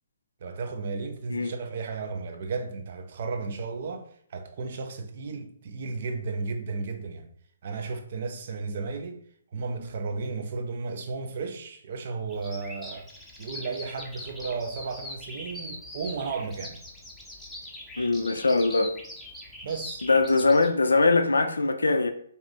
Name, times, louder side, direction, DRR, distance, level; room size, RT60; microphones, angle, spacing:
voice 1, 0.4-7.3 7.6-9.2 9.5-16.8 19.6-20.0, right 4 dB, 50° right, 0.5 m, -34 dB
Bird vocalization bird call bird song, 12.3-20.7, left 1 dB, 5° left, 0.7 m, -42 dB
voice 2, 18.0-18.9 20.0-22.1, left 3 dB, 75° left, 0.3 m, -22 dB
2.7 x 2.5 x 3.4 m
figure-of-eight pair, 130°, 0 cm